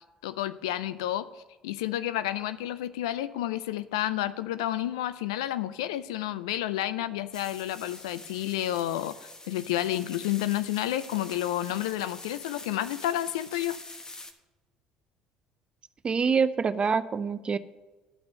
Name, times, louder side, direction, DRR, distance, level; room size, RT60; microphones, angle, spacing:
voice 1, 0.2-1.3 1.6-9.1 9.5-13.8, left 13 dB, 80° left, 15 dB, 0.4 m, -30 dB
sound 1, 7.3-14.3, left 2 dB, 25° left, 1.1 m, -45 dB
voice 2, 16.0-17.6, right 5 dB, 35° right, 14 dB, 0.6 m, -25 dB
10.5 x 6.0 x 6.5 m, 1.2 s
hypercardioid pair, 60°, 3 cm